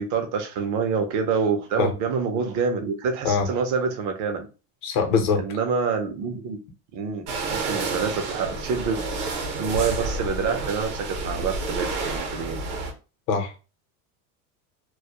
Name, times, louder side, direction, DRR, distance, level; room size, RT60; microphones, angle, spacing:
voice 1, 0.0-4.5 5.4-6.6 6.9-9.0 9.6-12.6, right 5 dB, 40° right, 0.5 m, -27 dB
voice 2, 4.8-5.4 13.3-13.6, left 5 dB, 55° left, 0.8 m, -22 dB
sound 1, 7.3-12.9, right 3 dB, 65° right, 0.8 m, -30 dB
2.3 x 2.0 x 2.7 m
supercardioid pair, 135°, 48 cm